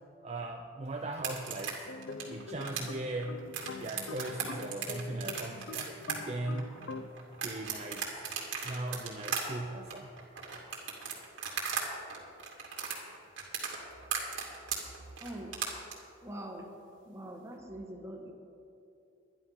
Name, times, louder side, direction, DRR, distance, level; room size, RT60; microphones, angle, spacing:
voice 1, 0.2-1.9 2.3-3.4 3.8-6.8 7.4-8.2 8.6-10.2, right 2 dB, 35° right, 3 dB, 0.6 m, -39 dB
sound 1, 1.1-11.8 12.1-15.9, right 7 dB, 75° right, 2.4 m, -37 dB
sound 2, 1.8-7.1, left 4 dB, 75° left, 0.6 m, -44 dB
voice 2, 15.2-15.6 16.2-16.7 17.1-18.3, right 1 dB, 15° right, 1 dB, 1.4 m, -43 dB
12.0 x 10.5 x 5.7 m, 2.7 s
head